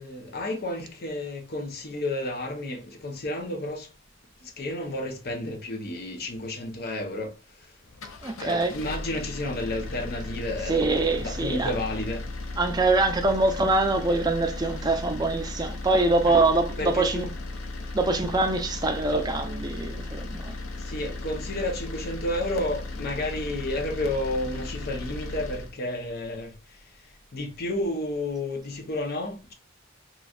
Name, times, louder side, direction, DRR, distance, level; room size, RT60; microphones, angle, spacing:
voice 1, 0.0-3.9 4.4-7.7 8.4-12.3 16.2-16.5 16.8-17.3 20.9-26.8 27.3-29.5, left 1 dB, 50° left, 0.7 m, -31 dB
sound 1, 7.8-25.7, left 2 dB, 90° left, 0.5 m, -36 dB
voice 2, 8.2-8.7 10.7-11.7 12.6-17.3 17.9-20.6, right 2 dB, 20° right, 0.4 m, -24 dB
3.1 x 2.5 x 2.3 m
head